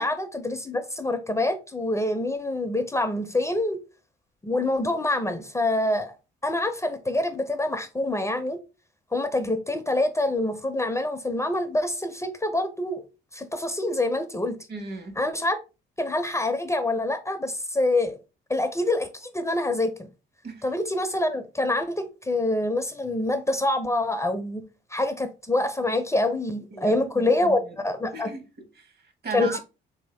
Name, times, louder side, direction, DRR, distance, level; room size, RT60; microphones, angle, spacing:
voice 1, 0.0-3.8 4.4-6.1 6.4-8.6 9.1-13.0 13.3-14.6 15.2-15.6 16.0-18.2 18.5-20.1 20.6-24.6 24.9-28.3 29.3-29.6, left 2 dB, 15° left, 0.5 m, -26 dB
voice 2, 14.7-15.2 20.4-20.6 26.7-27.9 28.1-29.6, right 3 dB, 55° right, 1.0 m, -37 dB
3.4 x 2.7 x 3.1 m
cardioid pair, 90°, 20 cm